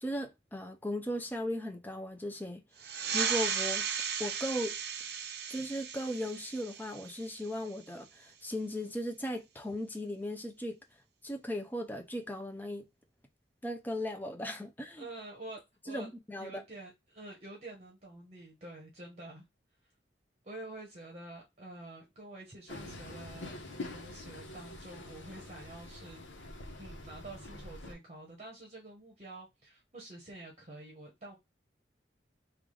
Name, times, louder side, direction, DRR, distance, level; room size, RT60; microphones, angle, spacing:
voice 1, 0.0-2.6 3.1-3.9 4.2-4.7 5.5-10.8 11.2-12.9 13.6-15.1 15.9-16.6, equal, 10° left, 0.5 m, -37 dB
sound 1, 2.8-7.9, right 7 dB, 55° right, 0.6 m, -36 dB
voice 2, 15.0-16.1 16.4-19.4 19.8-19.9 20.4-26.5 26.8-31.3, right 2 dB, 35° right, 0.9 m, -48 dB
Train, 22.7-27.9, left 2 dB, 80° left, 1.0 m, -45 dB
3.3 x 2.4 x 3.7 m
head